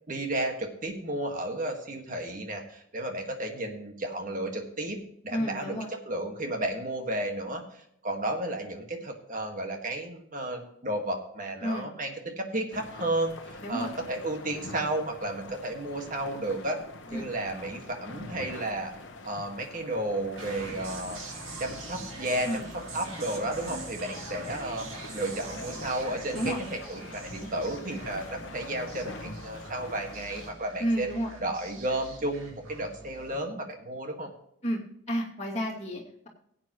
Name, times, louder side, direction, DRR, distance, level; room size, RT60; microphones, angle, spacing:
voice 1, 0.1-5.7 6.0-16.8 17.1-18.9 19.2-21.2 21.6-24.9 25.1-31.1 31.4-34.3, right 1 dB, 40° right, 4 dB, 1.8 m, -33 dB
voice 2, 5.3-5.9 11.6-11.9 13.6-13.9 17.1-17.3 22.4-22.6 26.3-26.6 30.8-31.3 34.6-34.8 35.1-36.3, equal, 35° left, -3 dB, 2.5 m, -31 dB
Seawaves On Rocks Kimolos Ellinika, 12.7-30.5, left 2 dB, 65° left, 1.0 m, -45 dB
sound 1, 20.4-33.4, right 2 dB, 90° right, 2.5 m, -43 dB
17.0 x 8.6 x 3.1 m, 0.73 s
head